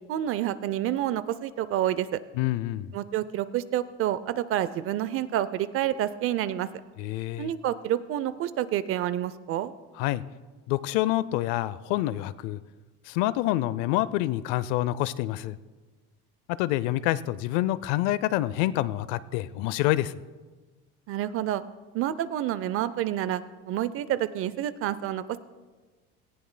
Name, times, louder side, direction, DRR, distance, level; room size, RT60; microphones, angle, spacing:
voice 1, 0.1-2.2 2.9-6.7 7.4-9.7 21.1-21.6 21.9-25.4, right 12 dB, 50° right, 16 dB, 0.6 m, -28 dB
voice 2, 2.3-2.9 7.0-7.5 10.0-10.2 10.7-12.6 13.1-15.6 16.5-20.1, left 15 dB, 75° left, 17 dB, 0.5 m, -27 dB
18.0 x 14.5 x 2.2 m, 1.3 s
cardioid pair, 125°, 29 cm